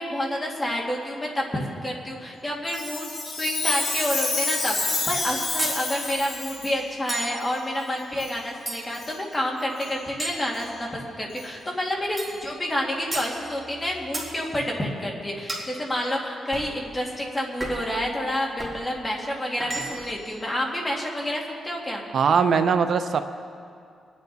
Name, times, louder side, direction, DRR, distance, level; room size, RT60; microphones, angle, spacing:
voice 1, 0.0-22.0, left 1 dB, 15° left, -2 dB, 2.0 m, -29 dB
Chime, 2.7-6.8 7.4-7.5 8.2-8.4 8.9-9.1 9.8-9.9 10.5-10.6 11.4-11.5, left 3 dB, 50° left, 3.5 m, -28 dB
sound 1, 5.6-5.8 7.1-7.4 8.7-9.1 10.2-11.1 12.2-12.4 13.1-13.3 14.1-14.3 15.5-15.7 16.5-16.7 17.6-17.9 18.6-18.8 19.6-20.2, right 2 dB, 15° right, 2.2 m, -33 dB
voice 2, 22.1-23.2, right 6 dB, 55° right, 9 dB, 0.5 m, -20 dB
24.5 x 9.4 x 4.0 m, 2.4 s
wide cardioid pair, 145°, 0 cm